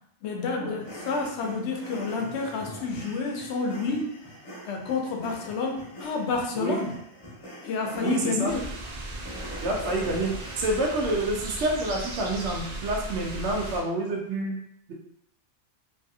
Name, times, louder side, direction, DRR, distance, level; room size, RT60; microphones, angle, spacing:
voice 1, 0.2-4.1 4.6-6.9 7.6-8.6, left 4 dB, 70° left, 2 dB, 0.8 m, -29 dB
sound 1, 0.8-11.0, equal, 35° left, 0.7 m, -43 dB
voice 2, 8.0-8.5 9.6-14.6, right 2 dB, 70° right, -1 dB, 0.8 m, -28 dB
sound 2, 8.5-13.8, right 2 dB, 55° right, 0.5 m, -37 dB
2.6 x 2.4 x 2.6 m, 0.74 s
omnidirectional pair, 1.2 m